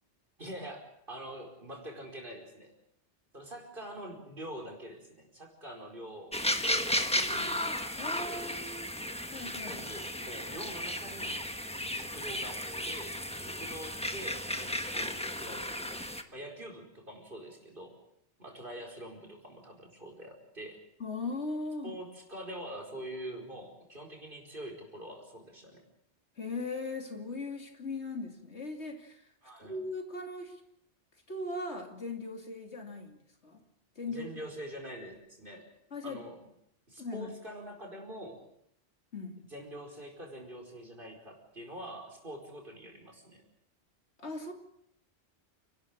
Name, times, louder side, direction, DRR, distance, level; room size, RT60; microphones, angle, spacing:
voice 1, 0.4-2.7 3.3-6.3 7.0-7.6 8.1-8.6 9.6-11.4 11.9-16.0 16.3-18.0 18.4-20.8 21.8-25.9 29.4-29.8 34.1-35.7 36.0-36.4 36.9-38.4 39.5-43.4, right 1 dB, 50° right, 2 dB, 5.1 m, -45 dB
sound 1, 6.3-16.2, left 1 dB, 5° left, 1.3 m, -34 dB
voice 2, 8.0-8.9 9.3-9.7 21.0-21.9 26.4-29.3 29.6-30.6 31.3-33.6 34.0-34.3 35.9-36.2 37.0-37.3 39.1-39.4 44.2-44.5, left 3 dB, 70° left, 4 dB, 3.1 m, -39 dB
29.5 x 12.5 x 8.6 m, 0.74 s
omnidirectional pair, 1.2 m